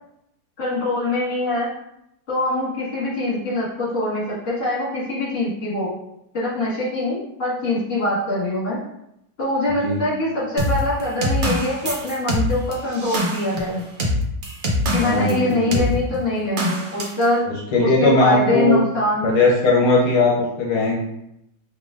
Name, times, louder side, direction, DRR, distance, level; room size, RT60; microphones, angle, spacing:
voice 1, 0.6-1.7 2.3-5.9 6.3-8.8 9.4-13.8 14.9-17.5 17.8-19.4, left 2 dB, 45° left, -8 dB, 1.9 m, -23 dB
sound 1, 10.6-15.4 15.7-15.9 16.6-17.2, left 1 dB, 80° right, 0.4 m, -23 dB
voice 2, 15.0-15.4 15.7-15.8 17.7-18.8 19.2-21.0, left 2 dB, 75° left, -3 dB, 1.3 m, -18 dB
5.2 x 2.9 x 2.4 m, 0.81 s
omnidirectional pair, 1.8 m